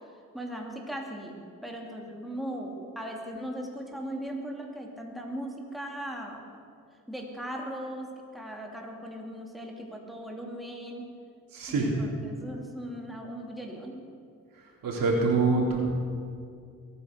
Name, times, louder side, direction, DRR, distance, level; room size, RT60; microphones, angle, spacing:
voice 1, 0.3-6.6 7.1-11.1 11.7-14.0, equal, ahead, 0 dB, 2.6 m, -38 dB
voice 2, 11.5-11.9 14.8-15.8, right 3 dB, 75° right, -1 dB, 3.5 m, -25 dB
22.5 x 9.4 x 6.6 m, 2.3 s
cardioid pair, 80°, 34 cm